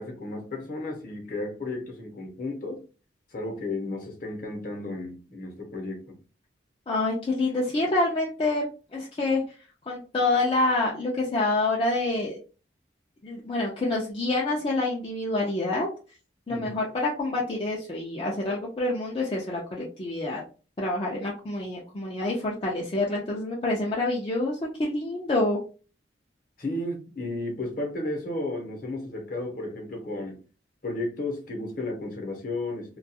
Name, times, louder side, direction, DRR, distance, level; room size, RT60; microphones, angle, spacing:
voice 1, 0.0-2.8 3.3-6.2 16.5-16.8 26.6-30.4 30.8-33.0, left 2 dB, 45° left, 2 dB, 0.8 m, -33 dB
voice 2, 6.9-9.6 9.9-12.4 13.2-15.9 16.5-20.4 20.8-25.6, left 2 dB, 30° left, -3 dB, 0.4 m, -27 dB
2.3 x 2.3 x 2.7 m, 0.36 s
head